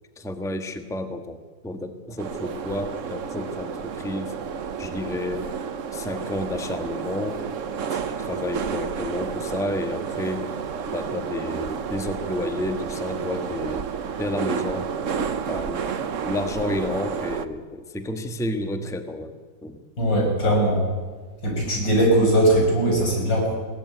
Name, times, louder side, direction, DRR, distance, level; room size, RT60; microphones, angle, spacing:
voice 1, 0.2-1.4 1.6-4.3 4.8-5.5 5.9-7.5 7.9-10.5 10.9-13.9 14.2-14.9 15.5-16.0 16.2-19.8, left 1 dB, ahead, 7 dB, 1.2 m, -31 dB
sound 1, 2.2-17.5, right 6 dB, 50° right, 1.2 m, -31 dB
voice 2, 20.0-20.8 21.4-23.5, right 1 dB, 90° left, 0 dB, 7.4 m, -20 dB
22.0 x 17.0 x 9.4 m, 1.5 s
omnidirectional pair, 1.9 m